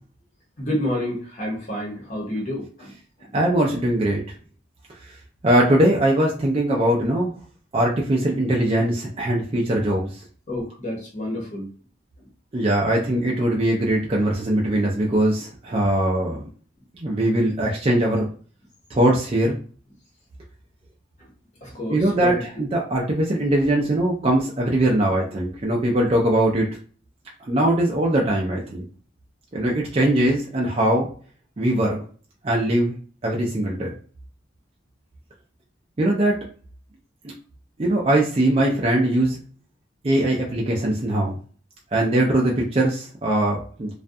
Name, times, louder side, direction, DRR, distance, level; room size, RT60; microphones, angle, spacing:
voice 1, 0.6-2.9 10.5-11.7 21.6-22.6, left 1 dB, 40° left, -3 dB, 0.8 m, -29 dB
voice 2, 3.3-4.2 5.4-7.3 7.7-10.2 12.5-16.5 17.0-18.3 18.9-19.6 21.9-26.7 27.5-28.9 29.5-31.1 31.6-32.0 32.4-33.0 33.2-33.9 36.0-36.4 37.2-37.3 37.8-39.4 40.0-41.4 41.9-43.9, right 1 dB, 30° right, -2 dB, 0.4 m, -21 dB
2.3 x 2.2 x 2.6 m, 0.42 s
head